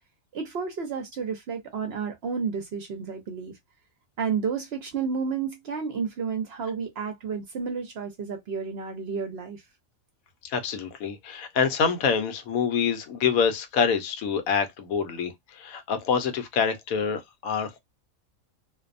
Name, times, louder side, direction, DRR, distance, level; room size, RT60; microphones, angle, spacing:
voice 1, 0.3-3.5 4.2-9.6, right 6 dB, 60° right, 0.7 m, -31 dB
voice 2, 10.4-17.8, left 6 dB, 80° left, 1.1 m, -26 dB
2.6 x 2.1 x 2.5 m
omnidirectional pair, 1.5 m